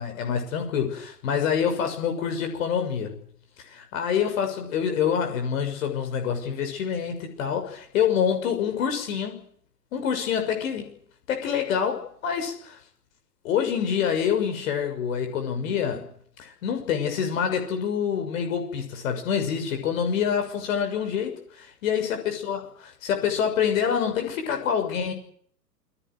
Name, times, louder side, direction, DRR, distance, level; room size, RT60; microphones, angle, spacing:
voice 1, 0.0-3.1 3.7-9.4 9.9-10.9 11.3-12.8 13.4-16.1 16.4-25.1, left 7 dB, 55° left, 6.6 m, -26 dB
28.5 x 20.0 x 8.0 m
figure-of-eight pair, 110°, 49 cm